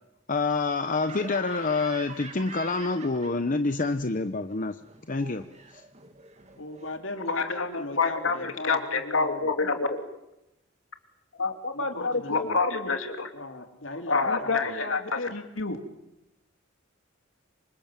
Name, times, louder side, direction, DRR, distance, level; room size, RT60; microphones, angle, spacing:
voice 1, 0.3-4.8 5.1-5.4 5.7-5.8, left 3 dB, 40° left, 9 dB, 0.9 m, -27 dB
Laughter, 1.0-3.8 4.0-7.0, right 4 dB, 35° right, 2.8 m, -45 dB
voice 2, 6.6-9.5 11.7-12.6 13.3-14.7, left 2 dB, 70° left, 6 dB, 2.8 m, -38 dB
voice 3, 7.2-10.0 11.4-13.3 14.1-15.8, left 4 dB, 90° left, 6 dB, 3.1 m, -27 dB
27.5 x 25.5 x 7.6 m, 0.89 s
head